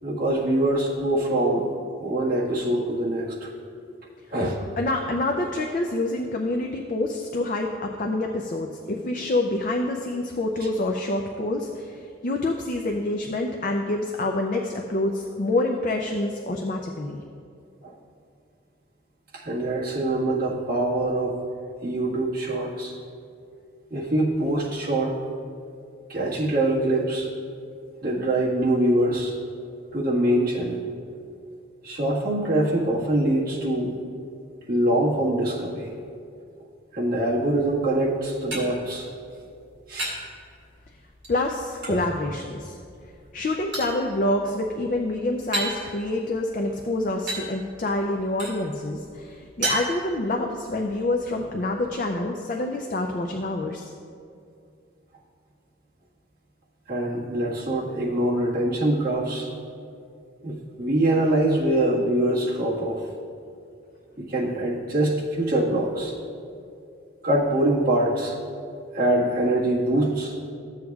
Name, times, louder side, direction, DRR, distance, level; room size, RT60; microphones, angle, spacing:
voice 1, 0.0-1.7 2.0-3.5 4.3-4.6 17.8-17.9 19.3-21.4 21.8-22.9 23.9-25.2 26.1-27.3 28.0-29.3 29.9-30.8 31.8-33.9 34.7-35.9 36.9-39.1 39.9-40.2 41.9-42.0 56.9-59.5 60.4-63.0 64.2-66.1 67.2-68.3 68.9-70.3, right 1 dB, 45° right, -6 dB, 1.6 m, -24 dB
voice 2, 4.8-17.2 41.3-42.8 43.3-53.9, left 2 dB, 40° left, 2 dB, 0.4 m, -27 dB
sound 1, 37.9-52.2, right 1 dB, 65° right, 2.1 m, -37 dB
14.0 x 7.8 x 2.3 m, 2.5 s
head